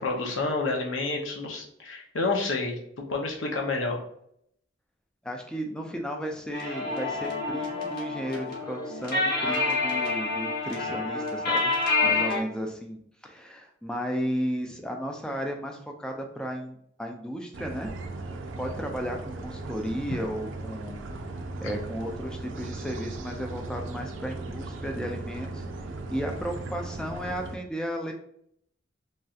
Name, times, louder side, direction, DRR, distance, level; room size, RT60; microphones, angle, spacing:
voice 1, 0.0-4.0 21.6-21.7, left 3 dB, 85° left, 1 dB, 0.7 m, -29 dB
voice 2, 5.2-11.7 12.0-13.0 13.2-17.9 18.3-21.3 21.6-25.6 26.1-28.1, equal, 5° left, 2 dB, 0.3 m, -34 dB
sound 1, 6.5-12.4, left 3 dB, 50° left, 0.9 m, -28 dB
sound 2, 17.5-27.6, right 2 dB, 75° right, 0.4 m, -37 dB
3.1 x 2.7 x 2.4 m, 0.70 s
head